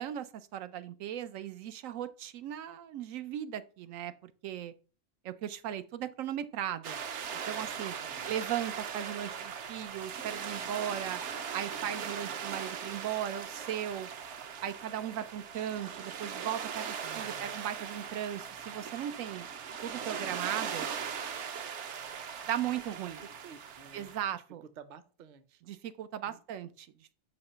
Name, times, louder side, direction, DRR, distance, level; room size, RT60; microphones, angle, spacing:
voice 1, 0.0-4.7 5.2-7.0 7.5-7.9 8.3-11.2 11.5-14.1 14.6-19.5 19.8-20.9 22.5-23.2 23.9-24.6 25.7-26.9, right 10 dB, 90° right, 1.0 m, -37 dB
sound 1, 6.8-24.2, right 7 dB, 65° right, 1.0 m, -39 dB
voice 2, 8.0-8.3 17.0-17.6 22.6-25.6 26.2-26.4, right 6 dB, 50° right, 0.6 m, -53 dB
6.4 x 2.9 x 5.5 m
omnidirectional pair, 1.3 m